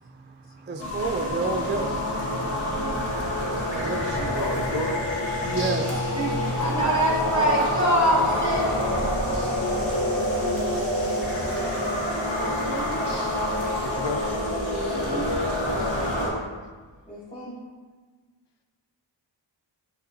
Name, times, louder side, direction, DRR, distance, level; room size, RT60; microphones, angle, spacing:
voice 1, 0.0-4.6 5.4-5.9, right 3 dB, 25° right, 3 dB, 0.4 m, -32 dB
sound 1, 0.8-16.3, left 1 dB, 85° left, 1.4 m, -27 dB
voice 2, 4.2-5.0 13.8-14.2 16.2-16.5, left 3 dB, 65° left, 4 dB, 0.7 m, -31 dB
voice 3, 5.9-6.9 12.6-13.1 14.7-15.5 17.1-17.6, right 3 dB, 10° left, -7 dB, 1.1 m, -35 dB
voice 4, 6.6-8.7, right 1 dB, 35° left, -4 dB, 1.5 m, -22 dB
6.9 x 5.1 x 2.6 m, 1.4 s
wide cardioid pair, 55°, 46 cm